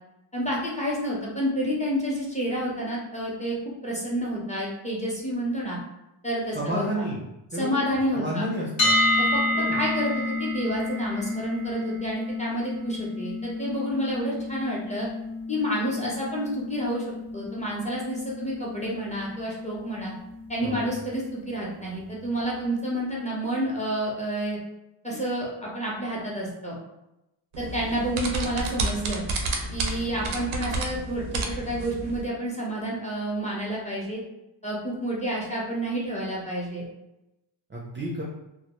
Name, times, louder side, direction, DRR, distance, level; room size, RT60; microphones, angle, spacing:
voice 1, 0.3-3.6 3.8-5.8 6.2-7.1 7.5-8.5 9.2-15.1 15.5-17.0 17.3-20.1 20.5-24.6 25.0-26.8 27.6-29.2 29.7-34.2 34.6-36.8, equal, 15° left, -5 dB, 0.7 m, -29 dB
voice 2, 6.5-7.3 7.5-9.0 9.5-9.8 20.6-20.9 37.7-38.2, equal, 25° right, -5 dB, 0.5 m, -31 dB
sound 1, 8.8-20.7, left 2 dB, 65° left, 0.7 m, -30 dB
sound 2, 27.5-32.2, right 2 dB, 85° right, 0.5 m, -31 dB
2.1 x 2.1 x 2.9 m, 0.92 s
wide cardioid pair, 75°, 49 cm